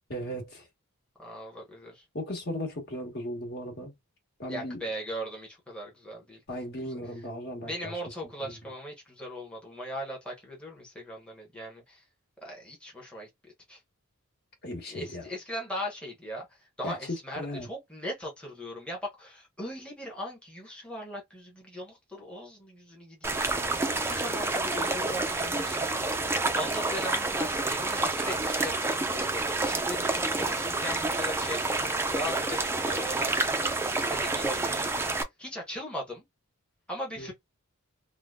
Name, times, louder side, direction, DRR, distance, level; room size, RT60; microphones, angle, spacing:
voice 1, 0.1-0.7 2.1-3.9 4.4-4.8 6.5-8.1 8.4-8.7 14.6-15.3 16.8-17.7 37.2-37.3, equal, 50° left, 1.4 m, -37 dB
voice 2, 1.2-2.0 4.5-6.4 7.7-12.0 12.4-13.8 14.9-16.5 16.8-23.6 24.1-26.2 26.5-33.3 33.6-34.7 35.4-36.2 36.9-37.3, equal, 5° left, 0.9 m, -39 dB
sound 1, 23.2-35.2, right 3 dB, 10° right, 0.4 m, -29 dB
3.7 x 2.1 x 2.2 m
head